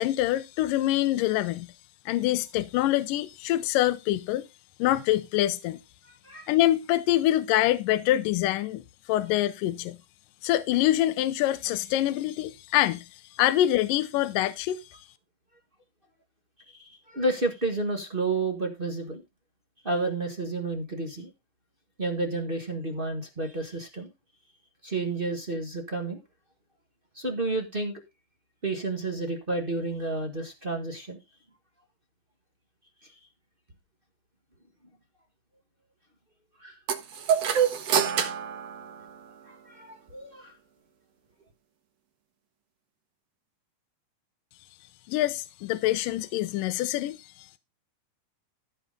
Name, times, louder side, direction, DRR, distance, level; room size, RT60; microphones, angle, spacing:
voice 1, 0.0-1.7 2.1-4.5 4.8-5.8 6.5-8.8 9.1-10.0 10.4-15.1 45.1-47.6, left 14 dB, 80° left, 2.4 m, -25 dB
voice 2, 6.0-6.5 16.7-19.2 19.8-21.3 22.0-24.1 24.8-26.2 27.1-28.0 28.6-31.2 36.6-36.8 37.9-38.1 39.4-40.5, right 2 dB, 30° right, 1.0 m, -31 dB
sound 1, 36.9-39.6, right 8 dB, 55° right, 2.3 m, -27 dB
14.0 x 5.0 x 5.3 m
omnidirectional pair, 3.8 m